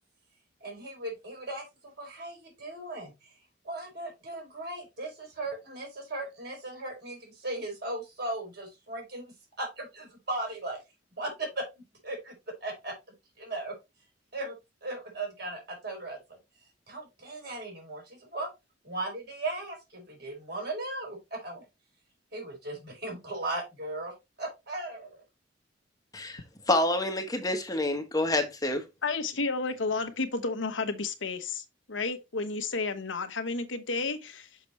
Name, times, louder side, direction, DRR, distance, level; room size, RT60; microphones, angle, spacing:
voice 1, 0.6-1.6 2.0-3.3 3.6-10.8 11.2-11.6 12.0-12.3 12.6-12.9 13.4-13.7 14.3-14.5 14.8-16.2 16.9-18.5 18.8-21.6 22.3-25.2, right 2 dB, 60° right, 4.6 m, -37 dB
voice 2, 26.1-28.9, left 1 dB, 20° left, 1.0 m, -28 dB
voice 3, 29.0-34.5, left 3 dB, 80° left, 1.1 m, -32 dB
6.6 x 6.0 x 3.1 m
head